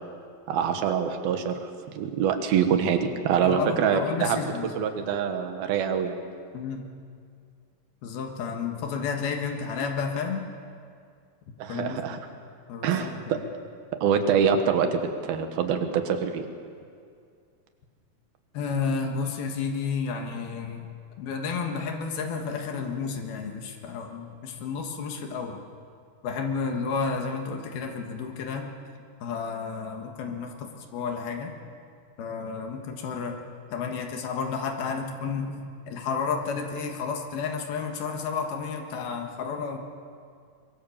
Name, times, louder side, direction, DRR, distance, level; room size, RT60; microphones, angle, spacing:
voice 1, 0.5-1.6 2.0-4.4 4.8-6.2 11.6-12.2 12.8-13.4 14.0-16.4, right 7 dB, 85° right, 6 dB, 3.3 m, -25 dB
voice 2, 3.4-4.7 6.5-6.9 8.0-10.5 11.7-12.2 12.7-13.4 18.5-20.9 21.2-25.6 26.2-28.7 29.2-31.5 32.2-33.4 33.7-35.6 35.9-39.8, left 5 dB, 90° left, 3 dB, 3.6 m, -31 dB
24.0 x 23.0 x 7.3 m, 2.2 s
omnidirectional pair, 4.2 m